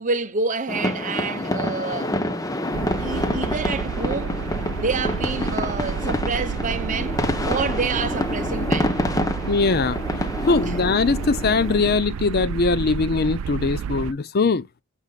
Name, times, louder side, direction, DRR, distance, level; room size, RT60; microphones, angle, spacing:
voice 1, 0.0-2.2 3.0-4.4 4.7-9.0 10.6-10.7, right 4 dB, 40° right, 0.7 m, -28 dB
sound 1, 0.7-12.0, left 1 dB, 15° left, 0.8 m, -27 dB
sound 2, 2.7-14.1, right 7 dB, 90° right, 0.3 m, -30 dB
voice 2, 9.5-10.0 10.5-14.7, left 4 dB, 50° left, 0.6 m, -21 dB
8.1 x 5.4 x 2.3 m
head